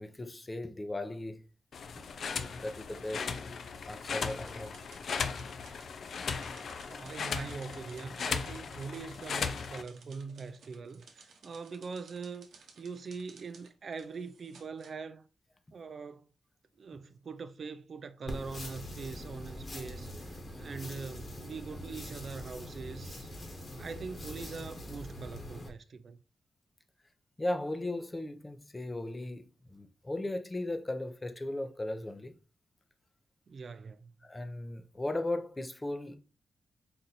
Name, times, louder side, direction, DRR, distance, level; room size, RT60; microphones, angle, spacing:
voice 1, 0.0-1.4 2.6-3.3 3.9-4.9 27.4-29.4 29.7-32.3 34.2-36.2, left 1 dB, 20° left, 0.6 m, -36 dB
sound 1, 1.7-9.8, left 5 dB, 65° left, 0.4 m, -37 dB
sound 2, 4.0-14.9, right 5 dB, 85° right, 0.8 m, -59 dB
voice 2, 6.9-15.3 15.7-16.3 16.8-23.3 23.8-26.2 33.5-34.1, right 5 dB, 55° right, 0.3 m, -43 dB
sound 3, 18.3-25.7, left 1 dB, 45° left, 1.3 m, -43 dB
4.2 x 2.5 x 4.0 m
cardioid pair, 80°, 0 cm